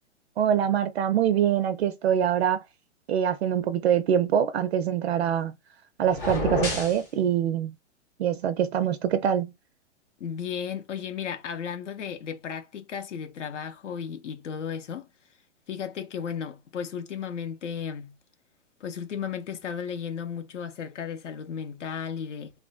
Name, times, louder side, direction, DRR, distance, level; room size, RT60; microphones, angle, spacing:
voice 1, 0.4-2.6 3.1-5.5 6.0-7.7 8.2-9.5, right 9 dB, 60° right, 0.5 m, -24 dB
sound 1, 6.1-7.0, left 2 dB, 10° left, 0.3 m, -28 dB
voice 2, 10.2-15.1 15.7-18.1 18.8-22.5, left 7 dB, 75° left, 0.6 m, -34 dB
3.1 x 2.5 x 2.3 m
hypercardioid pair, 120°, 36 cm